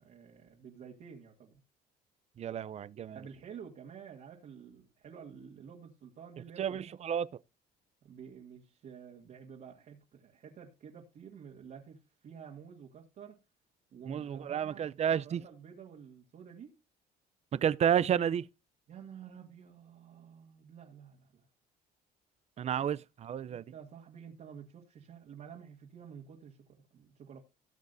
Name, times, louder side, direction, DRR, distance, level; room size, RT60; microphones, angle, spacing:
voice 1, 0.0-1.6 3.1-6.8 8.0-13.4 13.9-14.9 15.2-16.8 18.9-21.4 23.5-27.4, right 7 dB, 55° right, 2.1 m, -50 dB
voice 2, 2.4-3.2 6.6-7.3 14.1-15.4 17.5-18.5 22.6-23.6, right 9 dB, 40° right, 0.5 m, -31 dB
17.5 x 7.3 x 2.6 m
cardioid pair, 110°, 17 cm